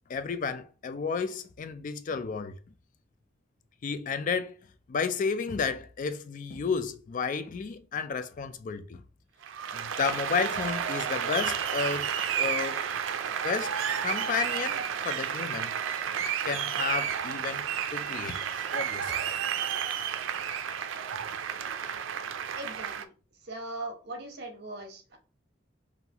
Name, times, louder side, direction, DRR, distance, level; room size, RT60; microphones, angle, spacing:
voice 1, 0.1-2.6 3.8-4.5 4.9-9.0 9.7-12.1 12.4-12.8 13.4-13.8 14.0-15.7 16.2-19.1, left 5 dB, 45° left, 0.3 m, -32 dB
Applause, 9.4-23.0, right 8 dB, 90° right, 0.4 m, -31 dB
voice 2, 22.6-23.1 23.4-25.2, right 2 dB, 60° right, 1.0 m, -40 dB
5.4 x 2.5 x 2.9 m
head